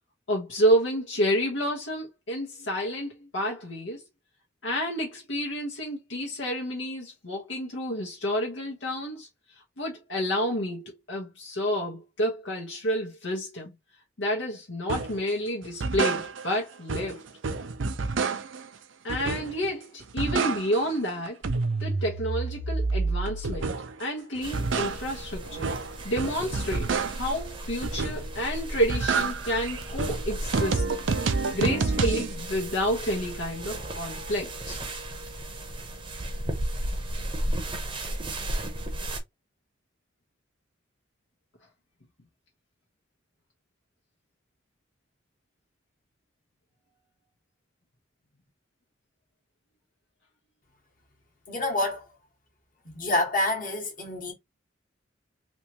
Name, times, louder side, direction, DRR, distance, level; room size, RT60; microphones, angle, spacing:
voice 1, 0.3-4.0 4.6-9.3 9.8-13.7 14.2-17.2 19.0-21.4 21.8-23.7 24.0-25.7 26.0-30.9 31.5-34.8, equal, 70° left, 1.2 m, -29 dB
sound 1, 14.9-15.2 15.6-16.6 16.9-18.7 19.1-19.7 20.0-21.0 21.3-24.0 24.4-27.4 27.8-28.4 28.7-32.3, right 4 dB, 75° right, 0.6 m, -29 dB
sound 2, 24.4-39.2, right 1 dB, 25° right, 0.8 m, -35 dB
voice 2, 51.5-52.1 52.8-54.3, left 1 dB, 45° left, 1.6 m, -27 dB
3.3 x 3.0 x 2.9 m
head